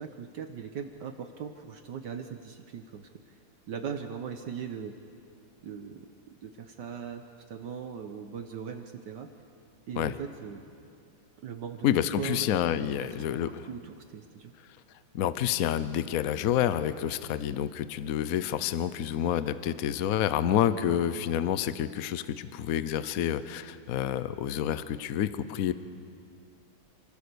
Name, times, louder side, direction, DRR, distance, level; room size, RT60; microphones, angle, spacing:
voice 1, 0.0-3.4 3.7-4.9 5.6-6.1 6.4-9.3 9.9-10.6 11.4-11.9 12.2-12.5 12.8-13.1 13.5-14.5, right 7 dB, 65° right, 6 dB, 1.4 m, -39 dB
voice 2, 11.8-13.7 15.1-25.7, left 10 dB, 60° left, 13 dB, 0.9 m, -28 dB
28.0 x 15.0 x 6.9 m, 2.4 s
omnidirectional pair, 2.2 m